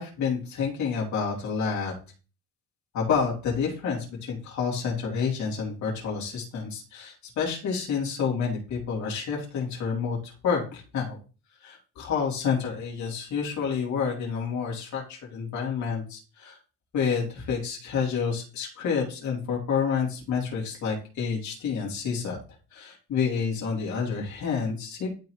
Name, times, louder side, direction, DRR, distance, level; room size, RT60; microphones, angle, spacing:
voice 1, 0.0-1.9 2.9-11.2 11.6-16.6 16.9-22.4 22.7-25.1, left 6 dB, 50° left, -2 dB, 2.6 m, -29 dB
11.5 x 4.0 x 3.0 m, 0.35 s
cardioid pair, 175°, 38 cm